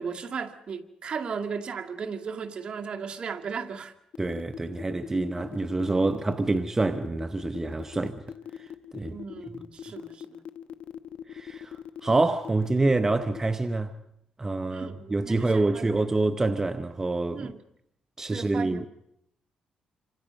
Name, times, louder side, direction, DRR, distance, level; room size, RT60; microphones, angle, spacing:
voice 1, 0.0-3.9 9.1-10.4 14.7-16.0 17.3-17.6 18.3-18.9, right 6 dB, 50° right, 2.1 m, -36 dB
sound 1, 4.1-13.5, left 9 dB, 70° left, 1.2 m, -41 dB
voice 2, 4.2-8.2 8.5-9.2 11.3-13.9 14.4-17.5 18.2-18.9, right 2 dB, 20° right, 0.9 m, -27 dB
27.5 x 25.5 x 5.3 m
cardioid pair, 90°, 2 cm